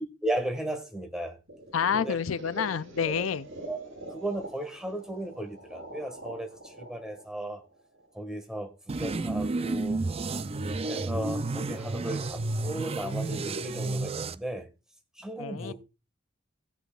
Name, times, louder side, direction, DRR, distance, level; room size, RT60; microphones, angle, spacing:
voice 1, 0.2-1.4 2.0-2.2 3.0-3.3 3.7-3.8 4.1-7.6 8.1-10.0 10.9-14.7 15.2-15.7, right 1 dB, 5° right, 1.7 m, -35 dB
sound 1, 1.5-8.4, right 1 dB, 85° right, 4.7 m, -45 dB
voice 2, 1.7-3.5 15.4-15.7, left 7 dB, 90° left, 0.5 m, -28 dB
sound 2, 8.9-14.4, right 3 dB, 30° right, 0.5 m, -31 dB
17.0 x 8.0 x 2.4 m
head